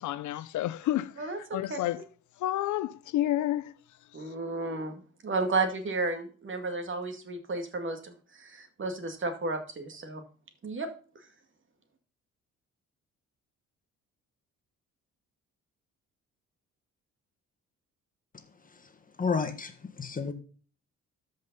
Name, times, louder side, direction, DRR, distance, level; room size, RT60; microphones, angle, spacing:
voice 1, 0.0-1.1 1.5-2.0 2.4-3.6, left 13 dB, 75° left, 0.6 m, -29 dB
voice 2, 1.2-1.8 4.1-10.2 10.6-10.9, right 3 dB, 40° right, 2.2 m, -33 dB
voice 3, 19.2-19.7 20.0-20.3, left 5 dB, 30° left, 1.6 m, -29 dB
13.0 x 5.4 x 4.1 m
cardioid pair, 90°, 30 cm